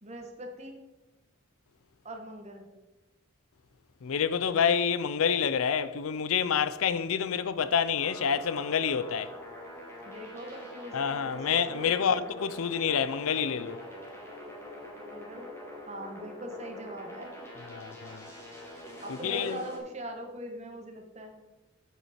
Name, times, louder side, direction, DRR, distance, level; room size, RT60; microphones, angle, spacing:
voice 1, 0.0-0.8 2.0-2.7 10.0-12.3 15.0-15.5 15.9-17.3 19.0-21.3, equal, 30° right, 1.3 m, -41 dB
voice 2, 4.0-9.3 10.9-13.8 17.7-18.3 19.1-19.6, left 7 dB, 90° left, 0.5 m, -28 dB
sound 1, 7.9-19.8, equal, 10° left, 1.7 m, -44 dB
7.9 x 7.8 x 4.3 m
head